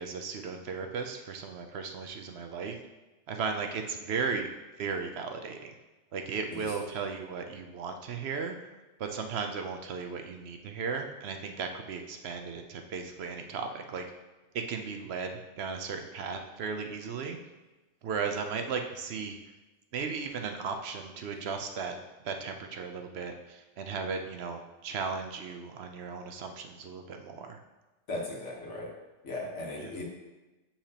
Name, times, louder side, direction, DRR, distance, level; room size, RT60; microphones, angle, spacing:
voice 1, 0.0-2.8 3.3-4.5 4.8-5.7 6.1-8.6 9.0-14.0 14.5-17.4 18.0-19.4 19.9-21.9 22.2-27.6 29.8-29.9, right 5 dB, 65° right, 5 dB, 0.9 m, -36 dB
voice 2, 28.1-28.9 29.2-30.0, left 2 dB, 80° left, -2 dB, 1.7 m, -37 dB
6.5 x 5.8 x 2.9 m, 1.1 s
omnidirectional pair, 1.2 m